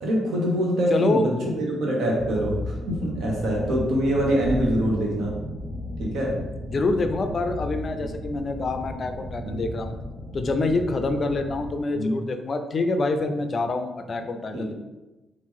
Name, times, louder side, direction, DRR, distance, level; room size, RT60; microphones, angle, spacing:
voice 1, 0.0-5.3 6.0-6.3 9.4-9.6 11.9-12.2 14.5-14.7, equal, 75° right, -2 dB, 1.0 m, -24 dB
voice 2, 0.9-1.3 6.7-9.9 10.3-14.7, left 3 dB, 40° left, 7 dB, 0.4 m, -26 dB
sound 1, 2.2-11.8, left 1 dB, ahead, 0.6 m, -34 dB
3.0 x 2.5 x 3.6 m, 1.1 s
cardioid pair, 90°, 0 cm